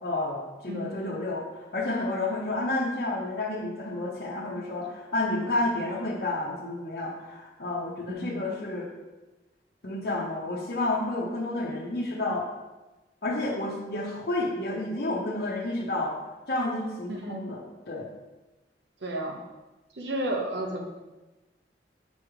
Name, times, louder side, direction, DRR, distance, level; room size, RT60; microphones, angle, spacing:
voice 1, 0.0-8.9 9.8-12.5 13.2-16.2 16.5-18.1, left 2 dB, 60° left, -3 dB, 0.8 m, -30 dB
voice 2, 0.7-1.0 8.1-8.4 17.1-17.5 19.0-19.4 19.9-20.9, right 1 dB, 85° right, 2 dB, 1.0 m, -32 dB
7.0 x 3.1 x 4.9 m, 1.1 s
head